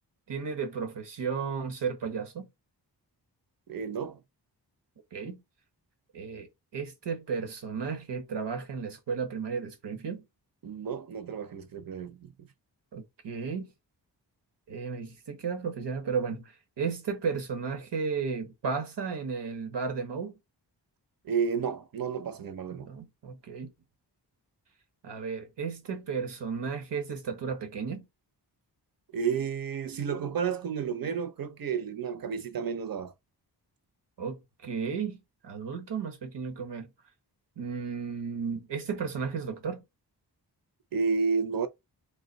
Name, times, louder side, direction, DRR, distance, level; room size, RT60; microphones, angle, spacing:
voice 1, 0.3-2.5 5.1-5.4 6.1-6.5 6.7-10.2 12.9-13.7 14.7-20.3 22.7-23.7 25.0-28.0 34.2-34.4 34.6-35.2 35.4-36.9 37.6-39.8, right 5 dB, 85° right, 1.2 m, -34 dB
voice 2, 3.7-4.2 10.6-12.5 21.2-22.9 29.1-33.1 40.9-41.7, right 6 dB, 55° right, 0.8 m, -31 dB
4.0 x 2.3 x 4.0 m
wide cardioid pair, 110°, 41 cm